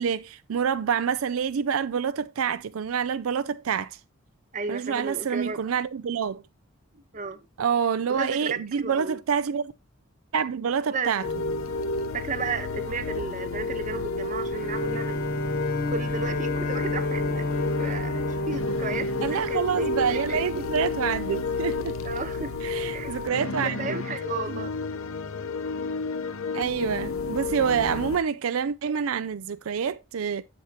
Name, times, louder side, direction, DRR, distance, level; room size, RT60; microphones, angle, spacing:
voice 1, 0.0-4.0 4.7-6.4 7.6-9.7 10.3-11.2 19.2-22.0 22.6-24.0 24.5-24.7 26.5-30.4, right 7 dB, 85° right, 0.4 m, -27 dB
voice 2, 4.5-5.6 7.1-7.4 8.1-8.5 8.8-9.2 10.9-11.3 12.1-15.2 15.9-17.5 17.8-20.7 22.0-22.6 22.9-23.1 23.6-24.7, right 4 dB, 35° right, 1.0 m, -33 dB
sound 1, 11.2-28.2, left 3 dB, 80° left, 0.8 m, -31 dB
Bowed string instrument, 14.5-19.7, left 2 dB, 45° left, 1.2 m, -31 dB
10.5 x 7.1 x 2.9 m
head